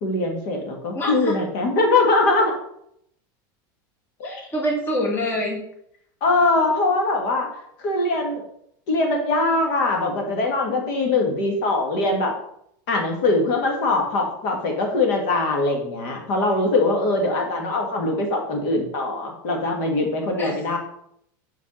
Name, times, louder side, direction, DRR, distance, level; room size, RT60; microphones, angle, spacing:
voice 1, 0.0-2.5 4.2-4.5 6.2-7.5 7.8-8.4 8.9-12.4 12.9-20.8, left 2 dB, 60° left, 2 dB, 2.1 m, -22 dB
voice 2, 0.9-1.4 4.2-5.6 20.4-20.6, equal, 20° left, -1 dB, 1.8 m, -25 dB
5.4 x 5.3 x 6.4 m, 0.72 s
supercardioid pair, 165°, 11 cm